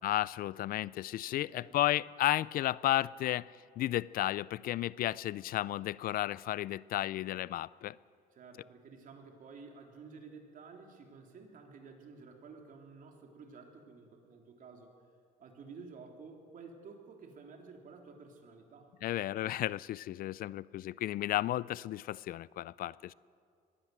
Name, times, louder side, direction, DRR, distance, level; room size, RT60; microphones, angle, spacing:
voice 1, 0.0-3.5 3.8-8.0 19.0-23.1, left 14 dB, 60° left, 21 dB, 0.4 m, -33 dB
voice 2, 1.2-1.8 8.3-14.9 15.4-18.9, right 4 dB, 55° right, 2 dB, 3.4 m, -52 dB
21.5 x 16.0 x 7.8 m, 2.2 s
cardioid pair, 110°, 17 cm